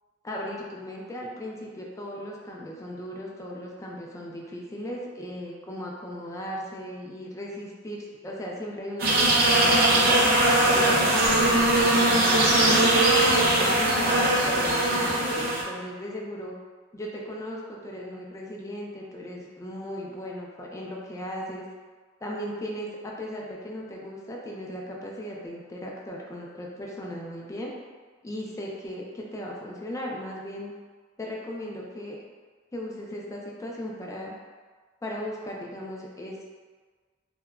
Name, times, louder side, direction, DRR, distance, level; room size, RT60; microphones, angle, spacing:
voice 1, 0.2-10.2 10.7-13.0 13.4-16.6 16.9-21.7 22.2-27.7 28.2-30.7 31.2-32.2 32.7-34.3 35.0-36.4, equal, 15° left, -2 dB, 0.3 m, -37 dB
sound 1, 9.0-15.6, right 1 dB, 50° right, 0.5 m, -20 dB
2.7 x 2.1 x 2.3 m, 1.5 s
head